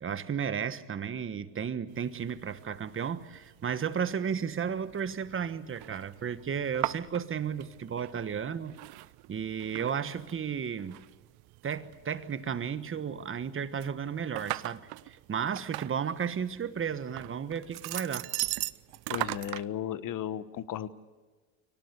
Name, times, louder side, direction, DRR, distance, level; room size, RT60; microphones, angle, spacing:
voice 1, 0.0-8.8 9.3-11.0 11.6-18.3, right 7 dB, 30° right, 1.3 m, -33 dB
sound 1, 1.9-19.6, right 20 dB, 65° right, 0.7 m, -41 dB
voice 2, 19.1-20.9, left 10 dB, 50° left, 1.2 m, -35 dB
25.0 x 18.0 x 8.3 m
supercardioid pair, 95°, 40 cm